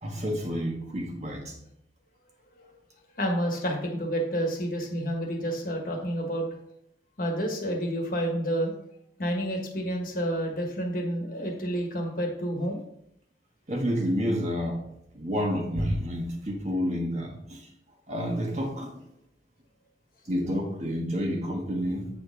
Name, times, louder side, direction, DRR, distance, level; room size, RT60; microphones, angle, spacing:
voice 1, 0.0-1.6 13.7-14.8 15.1-17.7 18.1-18.9 20.3-22.1, equal, 40° right, 1 dB, 1.4 m, -29 dB
voice 2, 3.2-6.4 7.2-8.7 9.2-12.8, equal, 50° left, 1 dB, 1.4 m, -29 dB
8.3 x 4.2 x 3.9 m, 0.75 s
head